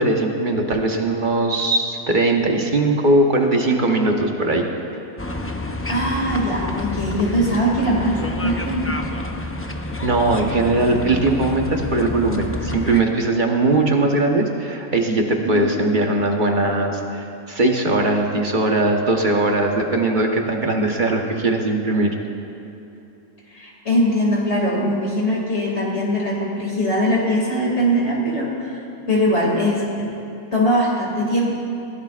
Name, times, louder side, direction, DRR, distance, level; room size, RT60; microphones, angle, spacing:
voice 1, 0.0-4.7 10.0-22.1, right 2 dB, 40° right, 2 dB, 1.2 m, -20 dB
sound 1, 5.2-13.0, left 2 dB, 20° left, 0.4 m, -29 dB
voice 2, 5.7-9.0 15.4-15.6 23.5-30.1 30.5-31.6, equal, 55° left, -4 dB, 2.7 m, -21 dB
22.0 x 17.0 x 2.5 m, 2.9 s
omnidirectional pair, 1.4 m